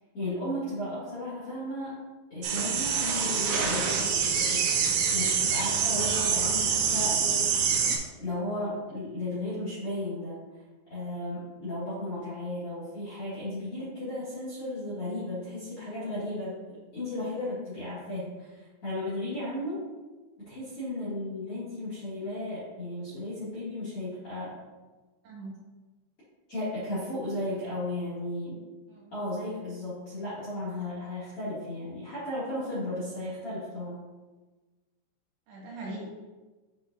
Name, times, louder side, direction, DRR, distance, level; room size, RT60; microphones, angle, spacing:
voice 1, 0.1-1.9 2.3-7.2 8.1-10.4 10.9-16.6 16.9-19.8 20.4-24.5 26.5-28.6 29.1-34.0, left 1 dB, 45° left, -10 dB, 2.2 m, -35 dB
sound 1, 2.4-8.0, right 6 dB, 85° right, 2.1 m, -26 dB
voice 2, 25.2-25.6 28.9-29.1 35.5-36.0, right 2 dB, 65° right, -7 dB, 3.9 m, -41 dB
8.7 x 5.3 x 2.5 m, 1.2 s
omnidirectional pair, 5.5 m